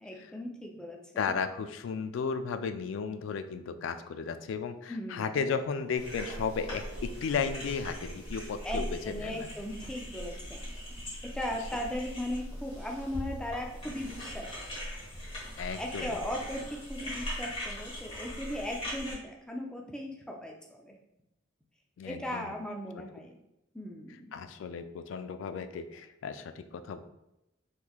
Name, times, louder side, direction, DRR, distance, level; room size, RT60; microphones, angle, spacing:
voice 1, 0.0-1.0 1.2-1.3 4.9-5.4 8.6-10.7 11.2-14.6 15.8-20.9 22.0-23.3 23.7-24.4, left 1 dB, 5° left, 1 dB, 0.4 m, -38 dB
voice 2, 1.2-9.5 15.6-16.2 22.0-22.5 24.3-27.0, left 6 dB, 75° left, 10 dB, 0.3 m, -34 dB
sound 1, 5.4-9.1, right 3 dB, 80° right, 0.5 m, -50 dB
sound 2, 6.0-19.1, equal, 30° left, 1.1 m, -40 dB
3.6 x 3.1 x 2.3 m, 0.89 s
head